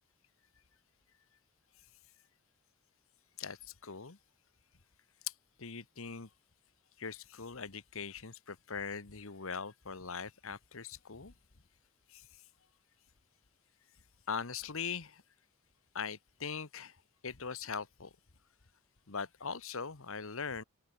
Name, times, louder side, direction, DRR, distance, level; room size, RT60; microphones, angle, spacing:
voice 1, 3.4-4.2 5.3-5.4 5.6-6.3 7.0-11.3 12.1-12.4 14.3-15.2 15.9-17.0 17.2-18.1 19.1-20.6, left 6 dB, 65° left, 1.4 m, -41 dB
head